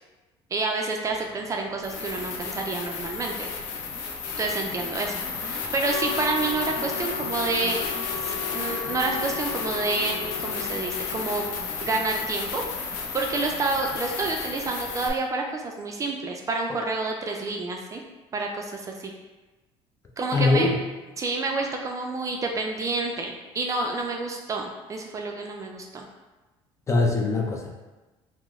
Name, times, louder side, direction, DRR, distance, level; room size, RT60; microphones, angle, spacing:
voice 1, 0.5-3.5 4.4-7.8 8.2-11.5 11.8-18.0 18.3-19.1 20.2-20.7 21.2-26.1, right 3 dB, 30° right, 1 dB, 0.4 m, -29 dB
sound 1, 1.1-1.2 1.8-15.1, left 5 dB, 85° left, 0.5 m, -32 dB
Wind instrument woodwind instrument, 5.8-11.7, left 5 dB, 65° left, 1.0 m, -37 dB
voice 2, 20.3-20.8 26.9-27.7, left 3 dB, 25° left, 0 dB, 0.5 m, -22 dB
2.9 x 2.0 x 3.5 m, 1.2 s
cardioid pair, 100°, 11 cm